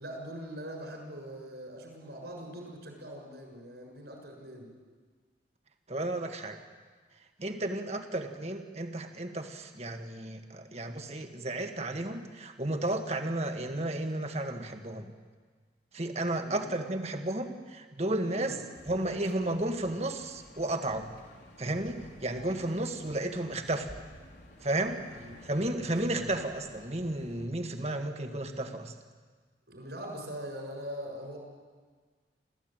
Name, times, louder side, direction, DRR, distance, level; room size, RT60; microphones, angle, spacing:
voice 1, 0.0-4.7 16.4-16.7 18.2-18.6 25.1-25.4 25.7-26.3 29.7-31.4, equal, 70° right, 1 dB, 6.7 m, -42 dB
voice 2, 5.9-6.6 7.4-15.1 15.9-18.6 18.9-21.1 21.6-23.9 24.6-25.0 25.4-28.9, right 1 dB, 35° right, 5 dB, 1.7 m, -33 dB
sound 1, 18.7-27.5, left 1 dB, 75° left, 3.9 m, -53 dB
28.5 x 14.5 x 9.1 m, 1.5 s
head